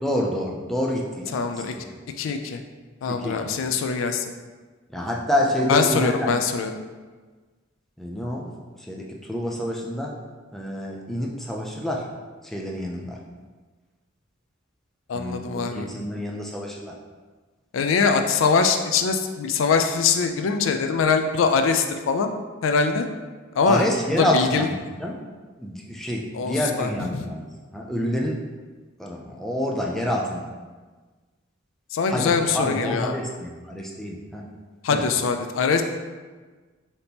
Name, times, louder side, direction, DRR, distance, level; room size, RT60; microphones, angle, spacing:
voice 1, 0.0-1.8 3.1-3.5 4.9-6.3 8.0-8.5 8.8-10.2 10.5-12.1 12.4-13.2 15.1-17.0 23.7-25.2 25.6-27.4 27.7-28.4 29.0-30.5 32.1-34.4 34.9-35.0, equal, ahead, -1 dB, 0.4 m, -28 dB
voice 2, 1.3-1.7 2.2-2.6 3.0-4.3 5.7-6.7 15.1-15.9 17.7-22.3 22.6-23.1 23.5-23.9 24.2-24.7 26.3-26.9 27.1-27.3 31.9-33.1 34.8-35.8, left 5 dB, 75° left, 6 dB, 0.4 m, -22 dB
4.1 x 2.9 x 3.4 m, 1.4 s
head